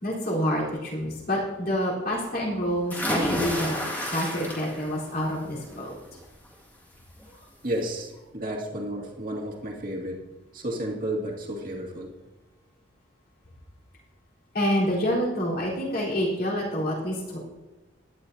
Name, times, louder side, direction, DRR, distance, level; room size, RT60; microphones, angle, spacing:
voice 1, 0.0-3.8 4.1-5.9 14.5-17.4, equal, 50° left, -5 dB, 4.1 m, -27 dB
sound 1, 2.9-5.0 5.4-5.8 7.2-7.3 7.7-7.8, equal, 10° left, 2.1 m, -30 dB
voice 2, 7.6-10.2 10.5-12.1, right 1 dB, 45° right, -1 dB, 2.4 m, -32 dB
16.5 x 11.0 x 2.8 m, 1.1 s
head